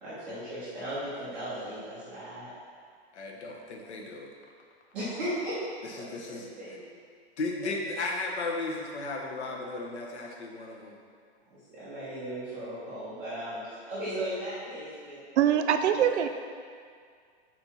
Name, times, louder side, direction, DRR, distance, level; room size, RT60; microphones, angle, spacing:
voice 1, 0.0-2.5 4.9-5.6 5.9-6.8 11.5-15.2 15.5-15.6 15.8-16.0, right 1 dB, 5° right, -13 dB, 0.4 m, -37 dB
voice 2, 3.1-4.3 5.8-6.5 7.4-10.9, left 3 dB, 75° left, 0 dB, 1.2 m, -35 dB
voice 3, 15.4-16.3, right 9 dB, 80° right, 8 dB, 0.6 m, -23 dB
4.4 x 4.3 x 5.6 m, 2.1 s
hypercardioid pair, 170°, 34 cm